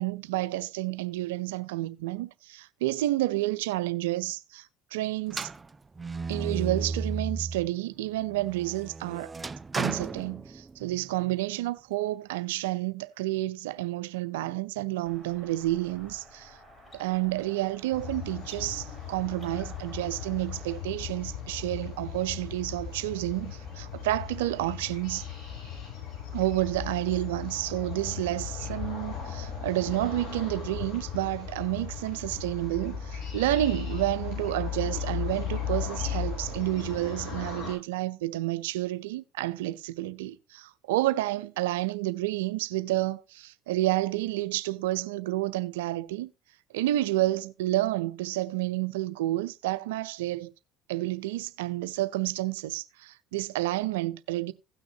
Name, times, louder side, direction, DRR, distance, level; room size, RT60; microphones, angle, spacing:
voice 1, 0.0-5.5 6.3-9.3 9.7-16.6 16.9-25.2 26.3-46.3 46.7-50.5 50.9-54.5, right 16 dB, 85° right, 0.5 m, -30 dB
sound 1, 5.3-7.7 8.1-11.0, right 4 dB, 20° right, 0.4 m, -34 dB
sound 2, 15.1-20.8, equal, 20° left, 4.8 m, -52 dB
sound 3, 17.9-37.7, left 7 dB, 75° left, 7.5 m, -36 dB
16.5 x 6.2 x 2.8 m
supercardioid pair, 80°, 0 cm